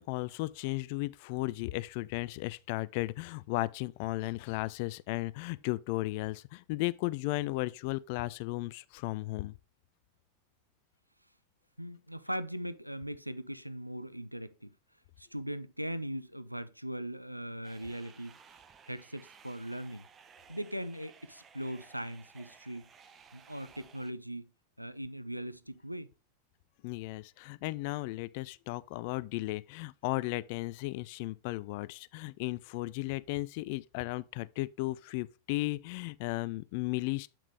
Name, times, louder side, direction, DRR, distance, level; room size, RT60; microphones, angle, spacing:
voice 1, 0.0-9.5 26.8-37.3, left 20 dB, 45° left, 0.3 m, -35 dB
voice 2, 11.8-14.7 15.2-18.4 18.9-20.1 20.5-22.8 23.3-24.4 24.8-26.1, equal, 90° right, 0.5 m, -39 dB
sound 1, 17.6-24.1, right 6 dB, 25° right, 0.8 m, -57 dB
8.6 x 5.8 x 3.3 m
figure-of-eight pair, 90°, 0 cm